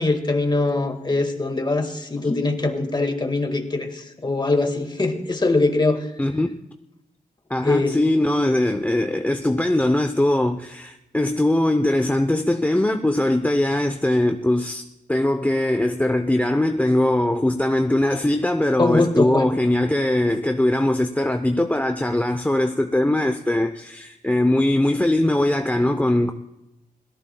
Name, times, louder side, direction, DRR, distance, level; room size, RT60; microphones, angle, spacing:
voice 1, 0.0-6.1 7.6-8.0 18.8-19.6, left 2 dB, 25° left, 1.8 m, -22 dB
voice 2, 6.2-6.6 7.5-14.8 15.1-26.3, left 1 dB, 10° left, 0.7 m, -21 dB
26.0 x 17.5 x 2.3 m
cardioid pair, 85°, 16 cm